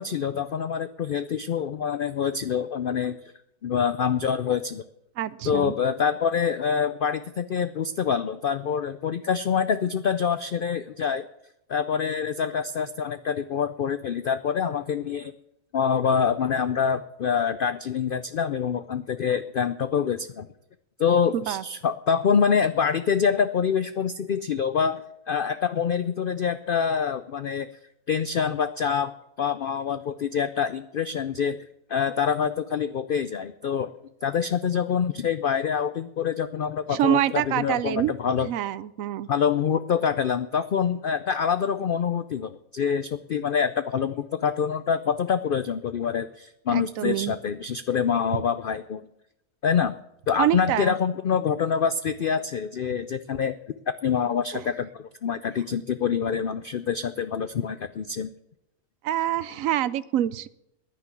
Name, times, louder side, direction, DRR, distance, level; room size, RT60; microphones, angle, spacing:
voice 1, 0.0-3.2 3.6-4.8 5.4-11.2 11.7-15.3 15.7-20.5 21.0-25.0 25.3-27.7 28.1-31.6 31.9-33.9 34.2-38.5 39.3-49.0 49.6-49.9 50.3-53.5 54.0-58.3, left 7 dB, 80° left, 12 dB, 0.4 m, -26 dB
voice 2, 5.2-5.7 21.3-21.6 36.9-38.1 38.4-39.3 46.7-47.3 50.4-50.9 54.5-54.6 59.0-60.5, right 12 dB, 70° right, 17 dB, 1.0 m, -26 dB
10.5 x 9.7 x 8.4 m, 0.81 s
omnidirectional pair, 1.6 m